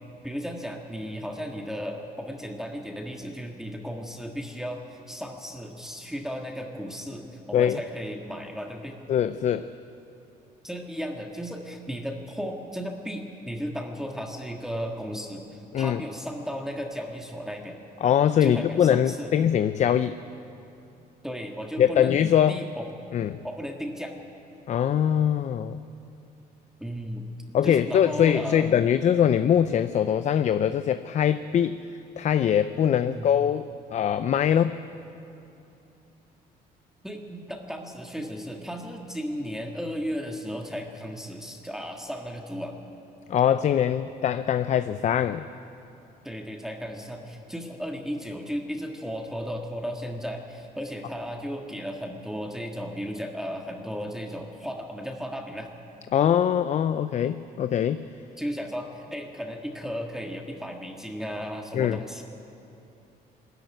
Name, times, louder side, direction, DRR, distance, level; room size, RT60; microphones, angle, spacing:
voice 1, 0.2-9.0 10.6-17.8 18.4-19.3 21.2-22.2 22.5-22.9 23.4-24.1 26.8-27.3 27.6-28.7 33.1-33.3 37.0-42.7 46.2-55.7 58.4-62.2, equal, 5° right, 1 dB, 1.7 m, -35 dB
voice 2, 9.1-9.7 15.7-16.0 18.0-20.2 21.8-22.6 23.1-23.4 24.7-25.8 27.5-31.8 32.2-34.8 43.3-45.5 56.1-58.1 61.7-62.0, left 9 dB, 45° left, 12 dB, 0.5 m, -22 dB
20.0 x 14.0 x 9.4 m, 2.8 s
cardioid pair, 110°, 17 cm